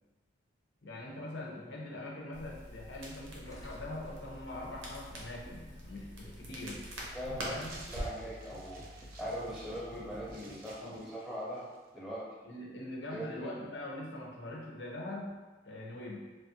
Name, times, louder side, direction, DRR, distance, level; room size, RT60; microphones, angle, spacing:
voice 1, 0.8-6.8 7.4-7.8 10.8-11.0 12.4-15.3 15.6-16.2, left 1 dB, 65° left, -3 dB, 0.6 m, -43 dB
Crackle, 2.3-10.3, equal, 85° right, 0.7 m, -45 dB
Gurgling, 3.4-11.3, left 1 dB, 20° left, 0.4 m, -54 dB
voice 2, 7.1-7.5 7.8-8.8 9.2-11.7 11.9-12.2 13.1-13.5, equal, ahead, -9 dB, 0.8 m, -40 dB
sound 1, 7.5-11.9, right 2 dB, 45° right, 0.4 m, -54 dB
3.1 x 2.3 x 2.7 m, 1.3 s
head